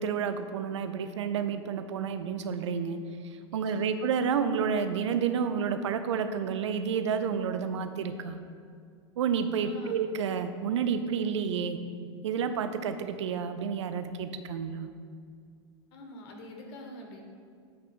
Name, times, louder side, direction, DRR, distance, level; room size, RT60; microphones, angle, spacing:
voice 1, 0.0-3.0 3.5-8.4 9.2-11.8 12.2-14.9, right 6 dB, 85° right, 9 dB, 0.5 m, -30 dB
voice 2, 3.5-4.0 9.6-10.0 15.9-17.2, equal, 65° left, 2 dB, 1.4 m, -46 dB
8.6 x 3.0 x 6.3 m, 2.2 s
hypercardioid pair, 110°, 15 cm